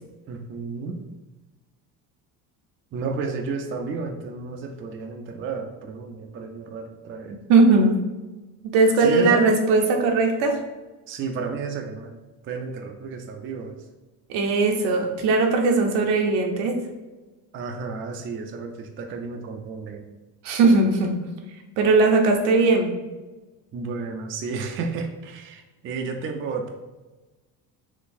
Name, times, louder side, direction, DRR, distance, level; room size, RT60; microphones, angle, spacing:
voice 1, 0.3-1.0 2.9-7.4 9.0-9.5 11.1-12.1 12.4-13.8 17.5-20.1 23.7-26.7, right 4 dB, 30° right, 4 dB, 0.4 m, -32 dB
voice 2, 7.5-8.0 8.7-10.6 14.3-16.7 20.4-21.1 21.8-22.9, right 3 dB, 75° right, 3 dB, 0.7 m, -19 dB
3.9 x 2.3 x 2.6 m, 1.2 s
supercardioid pair, 90°, 42 cm